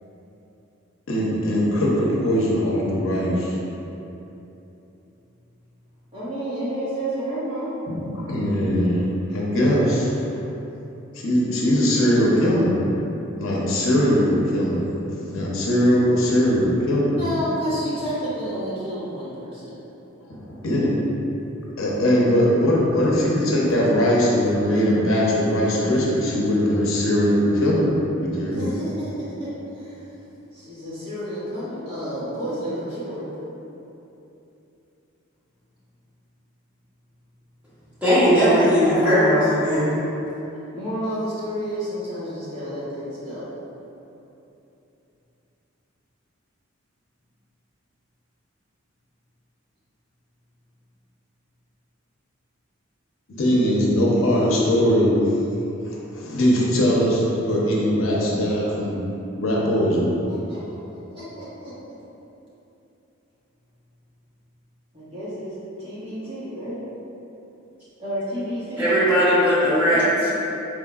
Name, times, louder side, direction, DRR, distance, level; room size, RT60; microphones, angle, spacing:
voice 1, 1.1-3.5 8.1-10.1 11.1-12.7 13.4-14.8 15.3-17.2 20.3-21.0 21.8-28.7 53.3-55.1 55.9-58.9 59.4-60.2, equal, 75° left, -4 dB, 0.7 m, -20 dB
voice 2, 6.1-7.8 17.1-19.8 28.4-30.1 30.5-33.3 40.7-43.4 60.3-61.7 64.9-66.8 68.0-69.0 70.1-70.3, equal, 25° right, -13 dB, 1.5 m, -30 dB
voice 3, 38.0-39.9 68.8-70.3, equal, 5° right, -13 dB, 1.3 m, -18 dB
4.7 x 3.7 x 2.4 m, 3.0 s
head